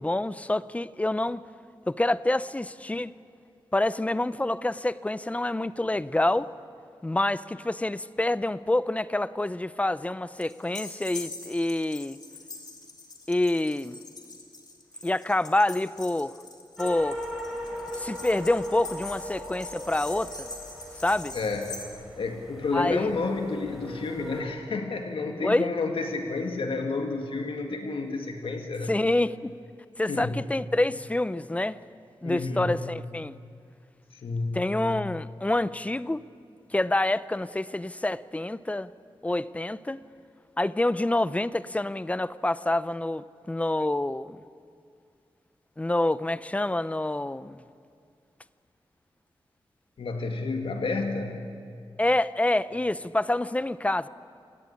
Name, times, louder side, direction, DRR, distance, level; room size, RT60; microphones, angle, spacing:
voice 1, 0.0-1.4 1.9-3.1 3.7-6.5 7.0-12.2 13.3-14.0 15.0-16.4 16.8-17.2 18.0-20.5 21.0-21.4 22.7-23.1 25.4-25.7 28.9-29.5 30.0-31.8 32.2-33.4 34.5-36.2 36.7-38.9 39.2-40.0 40.6-44.4 45.8-47.6 52.0-54.1, left 1 dB, 15° left, 0.6 m, -27 dB
sound 1, 10.4-21.8, left 3 dB, 45° left, 3.1 m, -43 dB
sound 2, 16.8-24.4, equal, ahead, 5.1 m, -39 dB
voice 2, 21.3-21.7 22.2-28.9 30.1-30.4 32.2-32.9 34.2-34.8 50.0-51.5, left 3 dB, 80° left, 2.1 m, -30 dB
27.5 x 17.5 x 9.9 m
wide cardioid pair, 130°, 9 cm